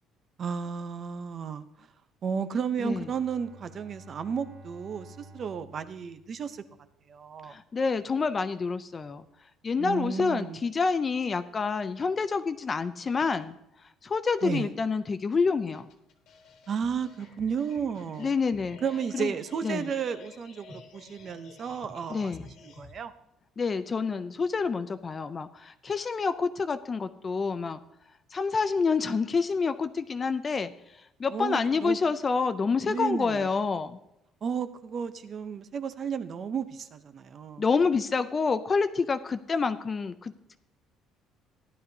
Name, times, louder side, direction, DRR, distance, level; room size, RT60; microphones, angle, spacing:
voice 1, 0.4-1.7 2.2-6.6 7.1-7.5 9.8-10.6 14.4-14.7 16.7-18.3 18.8-22.3 22.6-23.1 31.3-32.0 32.8-33.5 34.4-37.6, right 7 dB, 35° right, 11 dB, 0.6 m, -33 dB
Bowed string instrument, 2.7-7.1, right 1 dB, 65° right, 1.3 m, -52 dB
voice 2, 7.5-9.3 9.6-13.6 14.0-15.9 18.2-18.8 19.1-19.3 19.6-19.9 22.1-22.5 23.6-27.8 28.3-34.0 37.6-40.6, left 4 dB, 20° left, 11 dB, 0.4 m, -28 dB
sound 1, 15.7-22.9, left 3 dB, 55° left, 1.5 m, -51 dB
15.0 x 11.5 x 2.7 m, 0.85 s
cardioid pair, 175°, 0 cm